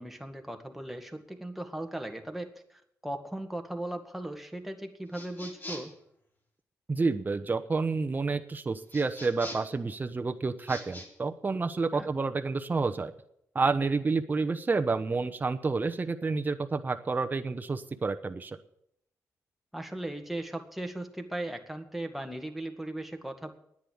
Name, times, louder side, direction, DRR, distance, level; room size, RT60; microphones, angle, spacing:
voice 1, 0.0-5.9 11.9-12.1 19.7-23.5, right 1 dB, 5° right, 4 dB, 1.9 m, -38 dB
sound 1, 5.1-6.0 8.9-9.8 10.6-11.1, left 1 dB, 35° left, 4.2 m, -43 dB
voice 2, 6.9-13.1 13.5-18.6, right 4 dB, 30° right, 8 dB, 0.9 m, -29 dB
10.0 x 8.8 x 9.5 m, 0.75 s
cardioid pair, 70°, 6 cm